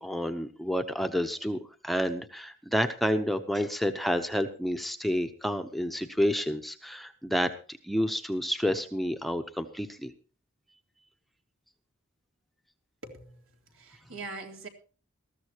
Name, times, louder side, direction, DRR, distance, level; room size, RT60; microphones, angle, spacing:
voice 1, 0.0-7.5 7.8-10.1, equal, ahead, 6 dB, 0.9 m, -29 dB
voice 2, 13.0-13.4 13.7-14.7, right 3 dB, 75° right, 2 dB, 3.4 m, -42 dB
20.5 x 14.0 x 3.0 m, 0.38 s
head